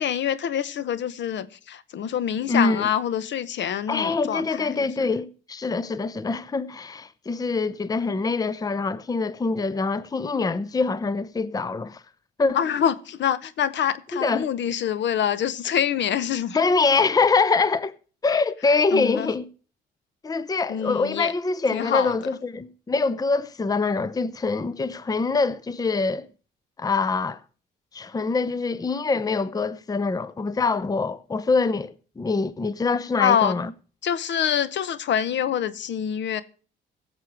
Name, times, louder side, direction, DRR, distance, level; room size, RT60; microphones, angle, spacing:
voice 1, 0.0-5.1 12.5-16.6 18.9-19.3 20.7-21.3 21.7-22.1 33.2-33.6 34.0-36.4, left 9 dB, 65° left, 0.9 m, -25 dB
voice 2, 2.5-2.9 3.9-12.0 12.4-12.6 14.1-14.5 16.5-18.0 18.2-19.5 20.2-26.3 26.8-27.4 27.9-33.7, left 4 dB, 20° left, 0.6 m, -24 dB
16.0 x 7.5 x 4.6 m
cardioid pair, 90°, 20 cm